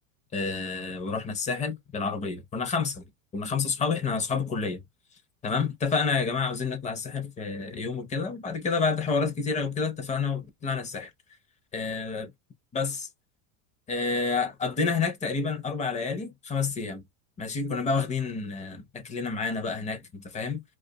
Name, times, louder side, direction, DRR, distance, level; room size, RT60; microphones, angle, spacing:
voice 1, 0.3-3.0 3.3-4.8 5.4-11.1 11.7-12.3 12.7-13.1 13.9-17.0 17.4-20.6, left 5 dB, 15° left, 0.5 m, -29 dB
2.4 x 2.3 x 2.7 m
supercardioid pair, 120°, 43 cm